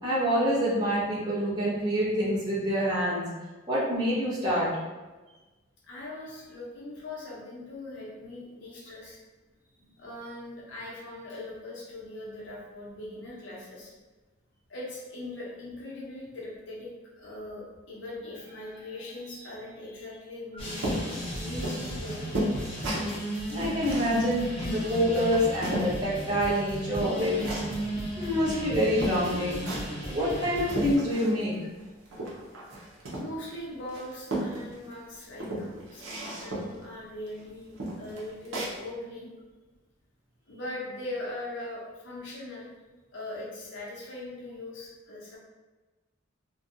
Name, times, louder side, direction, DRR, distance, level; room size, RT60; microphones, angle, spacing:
voice 1, 0.0-3.3 3.7-4.7 23.5-27.4 28.2-29.7 30.0-31.6, equal, 20° right, -9 dB, 0.8 m, -26 dB
voice 2, 5.8-9.2 10.0-13.9 14.7-22.7 33.1-39.3 40.5-42.7 43.1-45.4, left 1 dB, 65° left, -5 dB, 0.7 m, -40 dB
sound 1, 20.6-31.0, equal, 30° left, 0.6 m, -35 dB
sound 2, 20.8-25.9 26.4-27.9 28.5-28.6 29.0-30.0 30.4-31.5 31.8-33.5 33.9-34.9 35.3-36.8 37.3-37.4 37.8-38.8, right 1 dB, 85° right, 0.7 m, -34 dB
2.6 x 2.2 x 2.6 m, 1.2 s
head